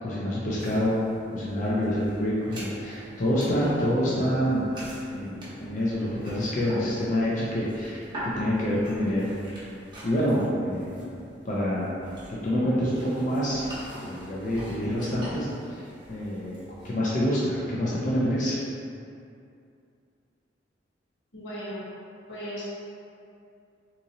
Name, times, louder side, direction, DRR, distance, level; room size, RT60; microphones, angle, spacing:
voice 1, 0.0-1.0 1.3-4.7 5.1-8.0 8.4-9.3 10.0-12.0 12.4-13.6 14.0-15.8 16.1-16.6 16.8-18.6, equal, 45° left, -7 dB, 0.5 m, -27 dB
sound 1, 0.6-16.9, right 1 dB, 25° right, 0.8 m, -43 dB
voice 2, 21.3-21.8 22.3-22.7, equal, 90° left, -9 dB, 1.2 m, -36 dB
3.7 x 2.9 x 2.7 m, 2.5 s
head